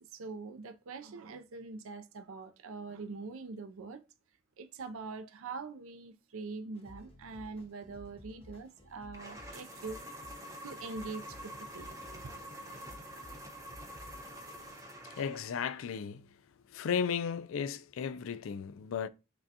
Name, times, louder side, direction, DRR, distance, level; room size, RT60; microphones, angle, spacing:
voice 1, 0.1-4.0 4.6-10.0 10.6-12.3, right 4 dB, 75° right, 0.5 m, -43 dB
sound 1, 6.7-14.7, left 1 dB, 30° left, 1.3 m, -55 dB
sound 2, 9.1-15.7, equal, 15° right, 0.8 m, -47 dB
voice 2, 15.0-16.3 16.7-19.1, left 7 dB, 70° left, 0.3 m, -35 dB
6.0 x 2.2 x 2.8 m
head